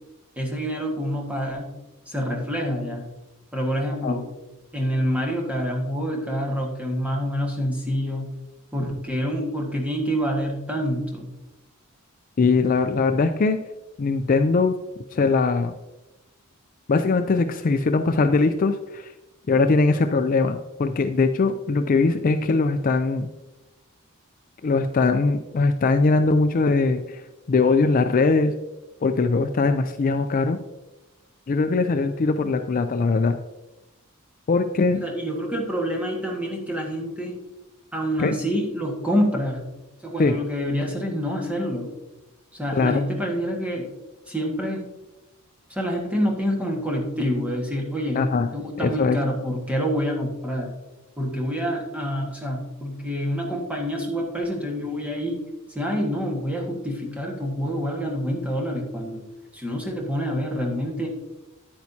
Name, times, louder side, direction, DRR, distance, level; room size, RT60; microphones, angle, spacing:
voice 1, 0.4-1.7 2.1-3.0 3.5-4.3 4.7-8.3 8.7-11.3 35.0-37.3 37.9-39.6 40.0-41.9 42.5-43.9 44.3-44.8 45.7-48.2 48.5-50.7 51.2-55.4 55.7-59.3 59.5-61.1, equal, 5° right, -1 dB, 1.6 m, -27 dB
voice 2, 12.4-13.6 14.0-14.8 15.1-15.7 16.9-19.1 19.5-23.3 24.6-27.2 27.5-28.5 29.0-30.6 31.5-33.4 34.5-35.0 38.2-38.3 40.2-40.3 42.7-43.0 48.2-48.5 48.8-49.2, left 3 dB, 40° left, 8 dB, 0.4 m, -21 dB
9.5 x 8.8 x 2.8 m, 1.0 s
head